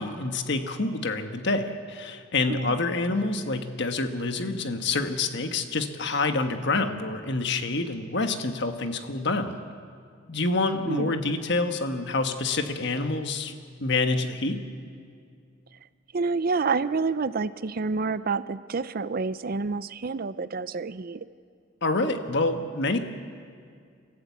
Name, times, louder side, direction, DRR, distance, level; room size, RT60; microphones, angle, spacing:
voice 1, 0.0-9.6 10.3-13.5 13.8-14.6 21.8-23.0, left 3 dB, 60° left, 7 dB, 1.4 m, -27 dB
voice 2, 16.1-21.2, right 4 dB, 50° right, 15 dB, 0.6 m, -28 dB
30.0 x 14.0 x 8.3 m, 2.2 s
head